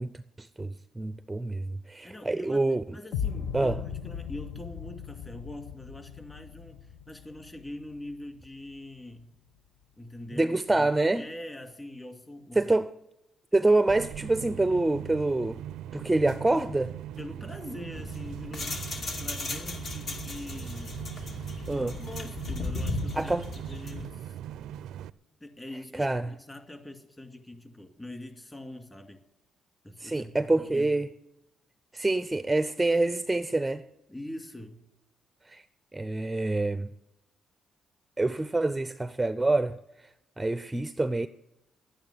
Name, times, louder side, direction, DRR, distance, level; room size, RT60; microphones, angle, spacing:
voice 1, 0.0-2.8 3.5-3.7 10.4-11.3 12.6-12.9 13.5-15.6 15.9-16.9 21.7-21.9 23.2-23.4 26.0-26.3 30.0-31.1 31.9-33.8 35.5-35.6 35.9-36.9 38.2-39.8 40.4-41.3, right 2 dB, 15° right, 0.5 m, -26 dB
voice 2, 2.0-9.3 10.0-10.9 11.2-12.6 17.2-18.8 19.2-21.0 21.7-24.4 25.4-29.2 29.8-30.9 34.1-34.8, left 1 dB, 20° left, 2.4 m, -43 dB
sound 1, 3.1-9.1, left 8 dB, 75° left, 1.0 m, -38 dB
sound 2, 13.9-25.1, right 11 dB, 85° right, 0.4 m, -40 dB
sound 3, 17.9-24.1, left 2 dB, 55° left, 2.3 m, -36 dB
11.5 x 9.0 x 9.7 m
cardioid pair, 90°, 0 cm